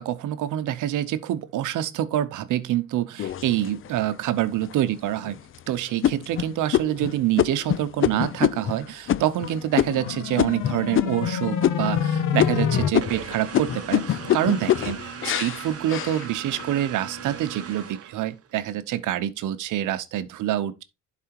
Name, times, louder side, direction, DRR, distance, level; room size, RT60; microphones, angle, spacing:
voice 1, 0.0-5.4 5.7-15.0 15.2-20.8, right 12 dB, 85° right, 0.8 m, -26 dB
sound 1, 3.2-4.0 4.6-4.7 5.2-5.6 6.0-11.3 11.6-12.1 12.4-16.7 17.2-17.7, left 11 dB, 45° left, 0.4 m, -25 dB
sound 2, 9.6-12.9, left 7 dB, 85° left, 1.1 m, -27 dB
sound 3, 13.0-18.6, right 10 dB, 50° right, 0.8 m, -38 dB
11.0 x 4.2 x 2.9 m
cardioid pair, 90°, 30 cm